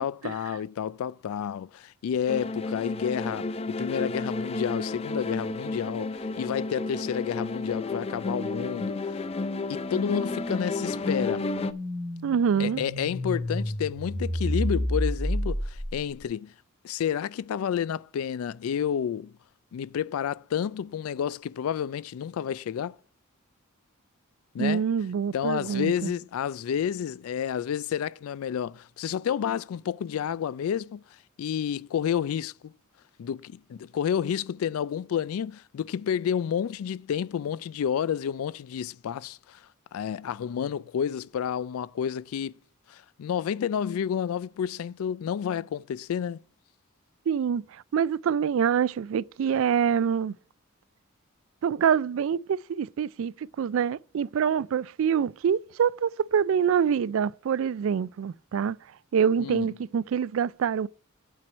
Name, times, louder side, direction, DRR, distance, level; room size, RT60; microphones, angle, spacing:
voice 1, 0.0-9.2 9.7-11.5 12.6-16.5 16.8-19.3 19.7-23.0 24.5-24.8 25.3-31.0 31.4-32.7 33.2-39.6 39.9-42.6 42.9-46.4 59.4-59.7, left 8 dB, 80° left, 0.3 m, -30 dB
sound 1, 2.3-11.7, left 3 dB, 30° left, 0.5 m, -32 dB
sound 2, 6.2-16.2, equal, 10° right, 1.4 m, -33 dB
voice 2, 12.2-12.8 24.6-26.1 47.3-50.4 51.6-58.8 59.1-60.9, right 7 dB, 65° right, 0.3 m, -25 dB
8.9 x 4.6 x 7.3 m
head